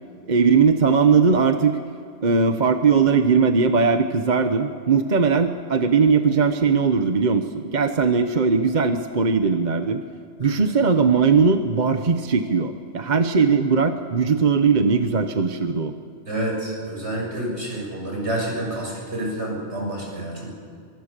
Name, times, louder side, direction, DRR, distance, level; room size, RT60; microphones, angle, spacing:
voice 1, 0.3-1.8 2.2-10.0 10.4-15.9, right 5 dB, 40° right, 7 dB, 1.1 m, -19 dB
voice 2, 16.3-20.5, right 1 dB, 70° right, -2 dB, 7.2 m, -28 dB
24.0 x 23.5 x 6.8 m, 2.4 s
omnidirectional pair, 1.2 m